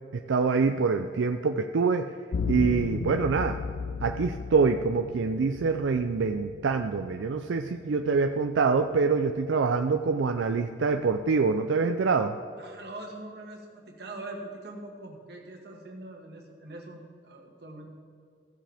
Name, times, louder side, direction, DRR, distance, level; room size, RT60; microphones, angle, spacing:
voice 1, 0.1-2.1 2.5-3.6 4.0-12.4, right 4 dB, 85° right, 6 dB, 0.4 m, -25 dB
sound 1, 2.3-11.4, left 5 dB, 80° left, 0.4 m, -37 dB
voice 2, 12.6-17.9, right 2 dB, 60° right, 1 dB, 1.7 m, -43 dB
15.5 x 7.5 x 3.5 m, 2.4 s
head